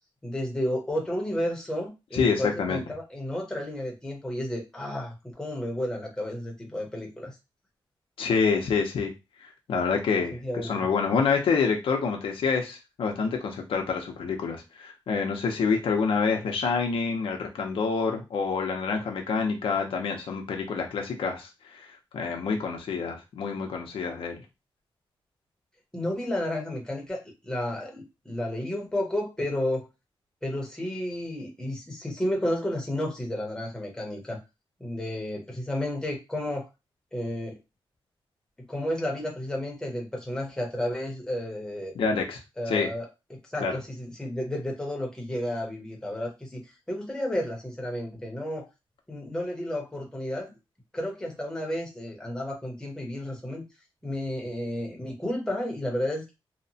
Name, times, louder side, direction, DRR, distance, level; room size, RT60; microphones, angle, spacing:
voice 1, 0.2-7.3 10.4-10.9 25.9-29.9 30.4-34.4 34.8-36.7 37.1-37.6 38.6-41.9 42.6-48.7 49.1-50.5 50.9-53.6 54.0-56.3, left 1 dB, 5° left, -1 dB, 0.7 m, -32 dB
voice 2, 2.1-2.8 8.2-9.1 9.4-10.4 10.7-24.4 41.9-42.4 42.7-42.9 43.6-43.8, left 5 dB, 75° left, 3 dB, 0.6 m, -27 dB
2.8 x 2.1 x 2.7 m, 0.25 s
wide cardioid pair, 150°, 9 cm